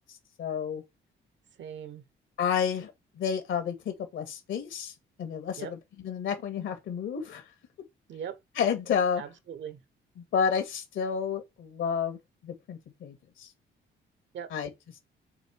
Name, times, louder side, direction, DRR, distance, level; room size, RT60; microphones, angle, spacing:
voice 1, 0.4-0.8 2.4-2.9 3.2-4.9 5.2-5.8 6.0-7.4 8.6-9.2 10.3-12.2 12.4-13.2 14.5-14.7, left 7 dB, 75° left, 2.3 m, -30 dB
voice 2, 1.6-2.0 5.6-5.7 8.1-8.4 9.2-9.8 14.3-14.5, right 8 dB, 65° right, 1.2 m, -40 dB
7.1 x 3.3 x 4.7 m
cardioid pair, 90°, 20 cm